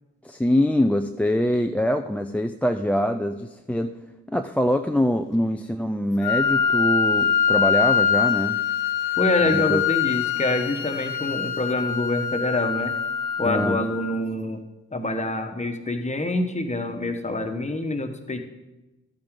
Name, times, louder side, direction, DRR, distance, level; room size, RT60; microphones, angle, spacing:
voice 1, 0.2-3.9 4.3-8.6 9.4-9.8 13.5-13.8, equal, 5° left, 6 dB, 0.4 m, -24 dB
Wind instrument woodwind instrument, 6.2-14.2, left 7 dB, 85° left, 0.9 m, -24 dB
voice 2, 9.2-12.9 13.4-14.6 14.9-18.4, left 2 dB, 20° left, 6 dB, 1.3 m, -26 dB
12.5 x 8.7 x 3.8 m, 1.0 s
supercardioid pair, 50°, 31 cm